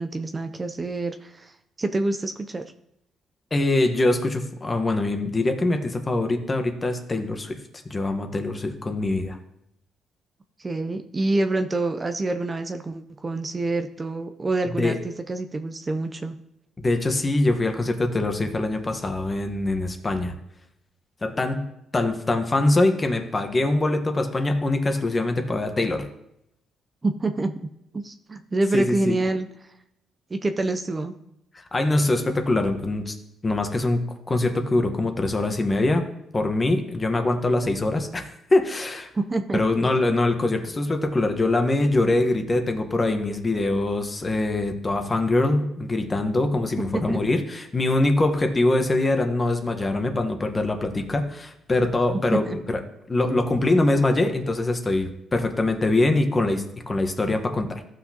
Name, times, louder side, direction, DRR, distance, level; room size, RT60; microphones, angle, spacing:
voice 1, 0.0-2.6 10.6-16.4 27.0-27.7 27.9-29.5 30.3-31.2 39.1-39.6 46.9-47.2 52.3-52.6, right 2 dB, 25° right, 7 dB, 0.5 m, -27 dB
voice 2, 3.5-7.6 7.8-9.4 14.8-15.0 16.8-20.3 21.2-21.7 21.9-26.0 28.7-29.2 31.5-33.1 33.4-34.0 34.3-36.0 36.3-39.1 39.5-52.8 53.1-57.8, left 2 dB, 25° left, 6 dB, 1.2 m, -23 dB
14.5 x 6.0 x 2.9 m, 0.80 s
cardioid pair, 90°, 0 cm